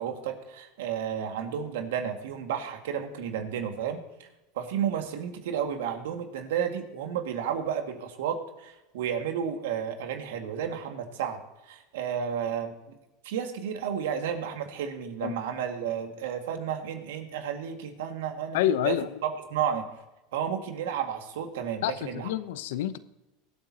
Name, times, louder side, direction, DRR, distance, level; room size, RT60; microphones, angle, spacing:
voice 1, 0.0-4.3 4.6-12.7 13.2-18.6 18.8-19.0 19.2-19.8 20.3-22.3, right 8 dB, 85° right, 2.0 m, -32 dB
voice 2, 18.5-19.1 21.8-23.0, left 11 dB, 80° left, 0.7 m, -28 dB
23.0 x 8.7 x 2.9 m
supercardioid pair, 115°, 0 cm